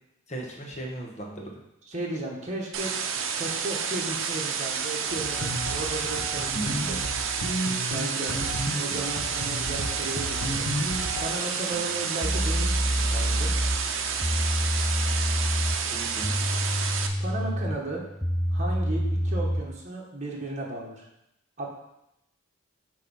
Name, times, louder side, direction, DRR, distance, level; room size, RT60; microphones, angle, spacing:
voice 1, 0.3-1.6 6.5-6.8 11.7-11.9 15.9-16.4, right 1 dB, 35° left, 0 dB, 1.2 m, -37 dB
voice 2, 1.9-2.9 3.4-7.0 7.9-8.4 8.7-10.7 11.2-13.5 17.2-18.0 18.5-21.1 21.6-21.7, right 2 dB, 35° right, -3 dB, 1.5 m, -35 dB
sound 1, 2.7-17.1, right 6 dB, 75° right, 0.7 m, -30 dB
sound 2, 5.1-11.3, equal, 75° left, 1.2 m, -33 dB
sound 3, 11.7-11.8 12.2-19.7, equal, ahead, 0.4 m, -27 dB
8.1 x 3.1 x 5.5 m, 0.84 s
head